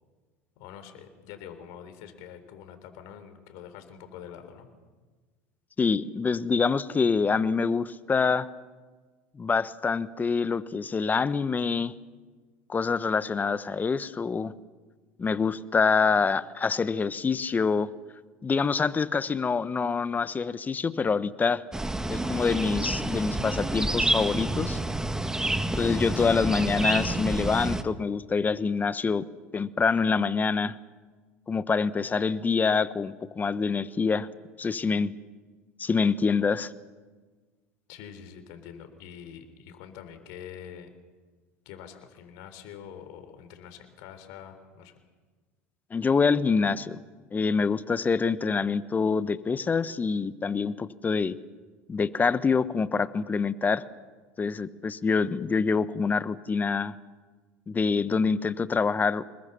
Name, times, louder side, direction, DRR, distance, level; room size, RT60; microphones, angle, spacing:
voice 1, 0.6-4.7 26.1-26.4 37.9-40.9 41.7-44.9, left 8 dB, 65° left, 9 dB, 3.9 m, -45 dB
voice 2, 5.8-8.5 9.4-11.9 12.7-14.5 15.2-17.9 18.4-21.6 22.1-24.8 25.8-29.3 29.5-30.8 31.5-34.3 34.6-35.1 35.8-36.7 45.9-47.0 47.3-51.4 51.9-53.8 54.4-56.9 57.7-59.2, left 5 dB, 25° left, 15 dB, 1.1 m, -26 dB
sound 1, 21.7-27.8, right 1 dB, 10° right, 1.5 m, -28 dB
26.5 x 21.5 x 7.0 m, 1.4 s
hypercardioid pair, 80°, 7 cm